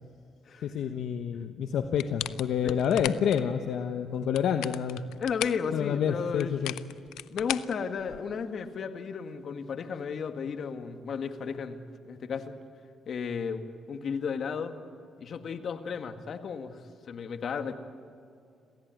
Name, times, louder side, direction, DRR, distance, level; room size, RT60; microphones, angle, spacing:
voice 1, 0.6-5.0 5.7-6.7, left 8 dB, 75° left, 7 dB, 1.1 m, -28 dB
sound 1, 2.0-3.4 4.2-5.7 6.4-8.4, left 13 dB, 90° left, 0.6 m, -37 dB
voice 2, 5.2-6.5 7.3-11.8 12.1-12.5 13.1-14.7 15.2-16.8 17.1-17.7, left 6 dB, 55° left, 8 dB, 1.9 m, -34 dB
27.0 x 16.0 x 9.2 m, 2.5 s
cardioid pair, 90°, 0 cm